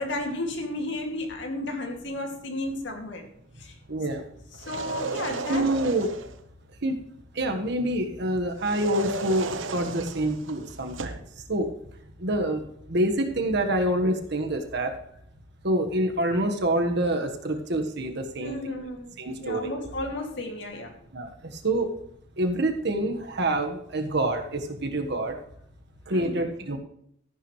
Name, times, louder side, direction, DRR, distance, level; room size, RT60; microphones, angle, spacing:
voice 1, 0.0-3.3 3.6-3.8 4.6-5.7 18.4-19.1 19.4-20.9 26.1-26.5, left 1 dB, 70° left, 3 dB, 2.4 m, -33 dB
voice 2, 3.9-4.2 5.5-6.1 6.8-7.0 7.3-11.7 12.2-15.0 15.6-18.6 19.2-19.7 21.1-21.9 22.4-25.4 26.1-26.8, right 1 dB, 60° right, 5 dB, 1.4 m, -27 dB
sound 1, 4.5-6.4 8.6-11.3, right 3 dB, 85° right, 0.9 m, -34 dB
13.5 x 11.0 x 3.2 m, 0.71 s
head